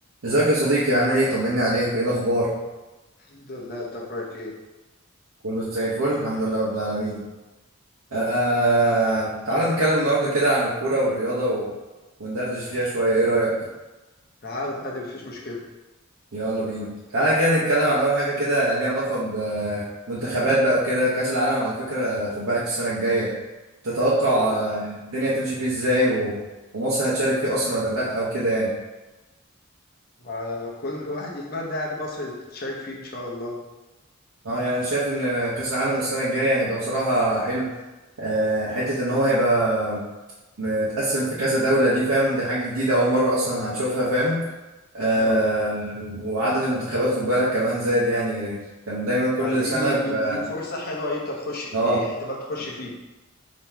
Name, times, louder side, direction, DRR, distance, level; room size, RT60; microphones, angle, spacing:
voice 1, 0.2-2.5 5.4-7.2 8.1-11.7 12.2-13.5 16.3-23.3 23.8-26.4 26.7-28.7 34.4-37.7 38.2-40.0 40.6-44.4 44.9-48.6 48.9-50.4 51.7-52.0, right 1 dB, 80° right, -9 dB, 0.9 m, -23 dB
voice 2, 3.3-4.5 14.4-15.7 24.2-24.5 30.2-33.6 45.1-45.4 49.4-53.0, left 2 dB, 45° left, -2 dB, 0.8 m, -32 dB
3.7 x 2.9 x 4.4 m, 1.1 s
head